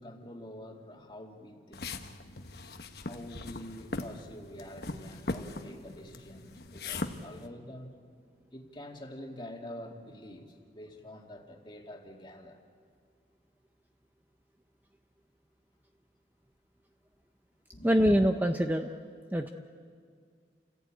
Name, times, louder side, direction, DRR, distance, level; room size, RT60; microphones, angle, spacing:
voice 1, 0.0-2.2 3.0-7.9 8.5-12.6 17.7-18.0, left 1 dB, 25° left, 1 dB, 2.3 m, -46 dB
sound 1, 1.7-7.5, left 2 dB, 60° left, 1.2 m, -40 dB
voice 2, 17.8-18.9 19.3-19.5, equal, 10° right, 5 dB, 0.6 m, -24 dB
29.5 x 15.5 x 8.9 m, 2.1 s
head